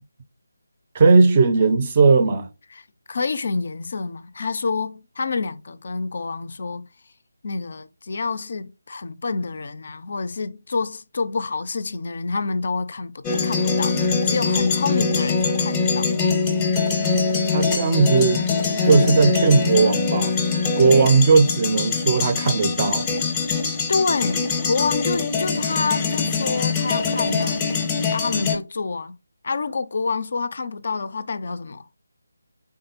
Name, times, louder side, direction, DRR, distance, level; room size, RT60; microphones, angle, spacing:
voice 1, 0.9-2.5 17.5-18.4 18.8-20.3 20.7-23.1, right 4 dB, 30° right, 0.5 m, -17 dB
voice 2, 2.7-6.9 7.4-13.9 14.2-16.1 23.9-27.7 28.1-29.2 29.4-31.9, left 4 dB, 45° left, 0.3 m, -27 dB
sound 1, 13.2-28.6, left 5 dB, 10° left, 0.6 m, -23 dB
3.5 x 3.5 x 2.8 m
figure-of-eight pair, 155°, 0 cm